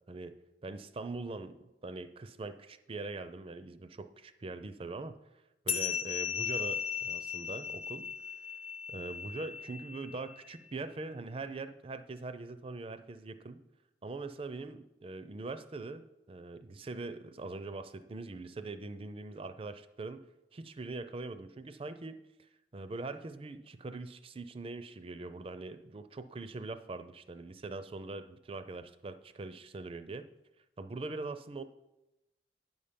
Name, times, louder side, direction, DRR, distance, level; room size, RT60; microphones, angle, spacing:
voice 1, 0.6-1.6 1.8-5.2 5.7-8.1 8.9-13.6 14.0-22.2 22.7-30.3 30.8-31.6, right 3 dB, 30° right, 11 dB, 0.4 m, -42 dB
sound 1, 5.7-10.5, left 7 dB, 35° left, 0.5 m, -37 dB
9.4 x 5.6 x 5.1 m, 0.95 s
head